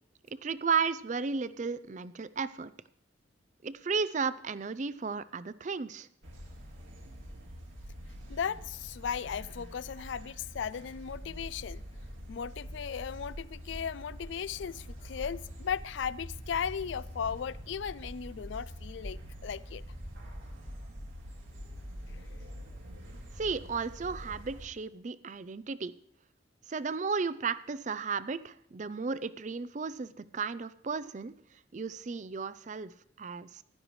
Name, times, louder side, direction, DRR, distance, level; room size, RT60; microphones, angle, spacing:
voice 1, 0.3-2.7 3.6-6.1 23.4-25.9 26.7-31.3 31.7-33.6, right 5 dB, 40° right, 0.4 m, -34 dB
sound 1, 6.2-24.7, equal, 85° right, 2.2 m, -45 dB
voice 2, 8.3-11.8 12.3-19.8 22.2-22.3, left 7 dB, 75° left, 0.4 m, -36 dB
16.0 x 11.5 x 3.2 m
head